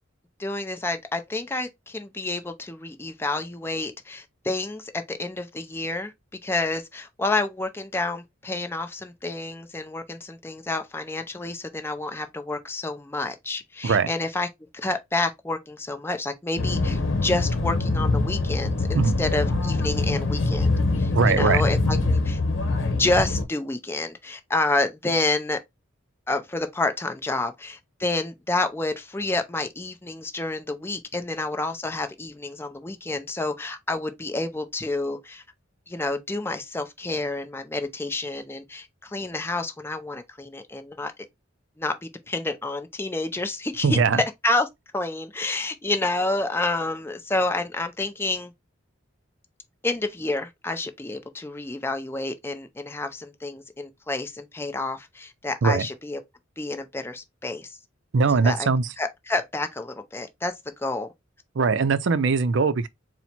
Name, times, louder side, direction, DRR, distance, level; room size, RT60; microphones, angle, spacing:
voice 1, 0.4-6.1 6.4-14.5 14.7-22.4 23.0-25.6 26.3-35.4 35.9-41.1 41.8-44.0 44.4-44.7 44.9-48.5 49.8-56.2 56.6-57.8 58.4-58.7 59.0-60.5 60.8-61.1, left 2 dB, 10° left, 0.5 m, -29 dB
sound 1, 16.6-23.5, left 2 dB, 70° left, 0.9 m, -24 dB
voice 2, 21.1-21.6 43.8-44.2 55.6-55.9 58.1-58.9 61.5-62.9, right 4 dB, 65° right, 0.5 m, -21 dB
4.3 x 2.1 x 4.2 m
head